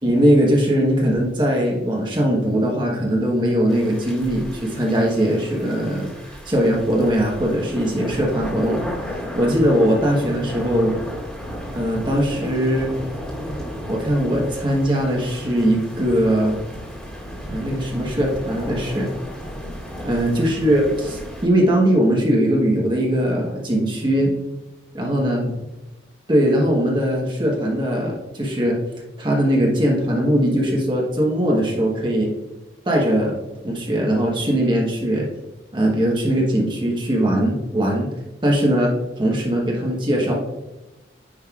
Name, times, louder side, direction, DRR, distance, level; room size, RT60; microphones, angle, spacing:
voice 1, 0.0-8.9 9.3-10.9 11.7-12.9 13.9-16.6 17.5-19.1 20.0-24.3 24.9-25.5 26.3-28.8 29.2-32.3 32.9-33.4 33.6-35.3 35.7-38.1 38.4-38.9 39.2-40.3, equal, 25° right, -2 dB, 1.2 m, -20 dB
sound 1, 3.7-21.5, equal, 5° left, 1.9 m, -34 dB
9.7 x 5.3 x 2.4 m, 1.0 s
head